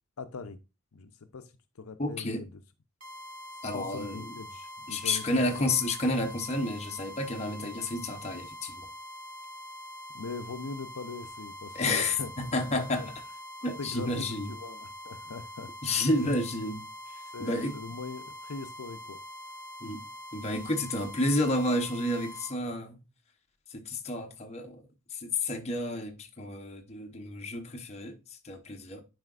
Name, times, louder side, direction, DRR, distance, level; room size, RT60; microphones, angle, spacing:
voice 1, 0.2-0.6 0.9-2.5 3.7-5.7 10.1-12.3 12.7-13.1 13.8-16.1 17.3-19.2, left 4 dB, 75° left, 0.7 m, -41 dB
voice 2, 2.0-2.4 3.6-4.3 4.9-8.9 11.7-13.1 13.6-14.5 15.8-16.8 17.1-17.7 19.8-20.0 20.3-23.0 23.7-24.9 25.1-29.0, left 2 dB, 30° left, 0.9 m, -31 dB
sound 1, 3.0-22.5, left 1 dB, 40° right, 1.3 m, -44 dB
9.5 x 4.9 x 2.4 m
head